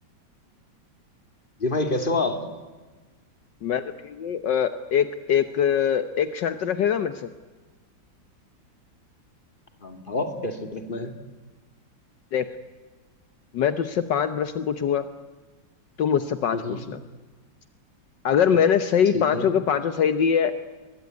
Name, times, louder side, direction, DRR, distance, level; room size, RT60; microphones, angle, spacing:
voice 1, 1.6-2.4 9.8-11.1 16.5-16.8 19.1-19.5, left 2 dB, 25° left, 6 dB, 2.8 m, -27 dB
voice 2, 3.6-7.3 12.3-12.4 13.5-15.1 16.0-17.0 18.2-20.5, left 8 dB, 70° left, 11 dB, 1.6 m, -23 dB
24.0 x 21.5 x 9.6 m, 1.3 s
omnidirectional pair, 2.0 m